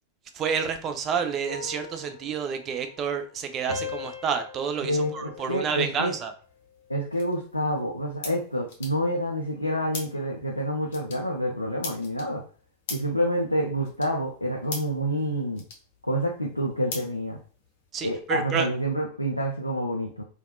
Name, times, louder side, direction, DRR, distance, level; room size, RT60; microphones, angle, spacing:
voice 1, 0.3-6.3 17.9-18.7, right 6 dB, 30° right, 7 dB, 0.4 m, -29 dB
sound 1, 1.5-3.4 3.7-6.2 6.7-7.1, left 3 dB, 75° right, 0.6 m, -40 dB
voice 2, 4.8-6.1 6.9-12.4 12.9-15.6 16.0-17.4 18.0-20.2, equal, 85° left, 0 dB, 0.4 m, -28 dB
sound 2, 6.4-17.9, left 3 dB, 55° left, 0.7 m, -44 dB
3.4 x 2.3 x 2.3 m, 0.41 s
figure-of-eight pair, 90°, 0 cm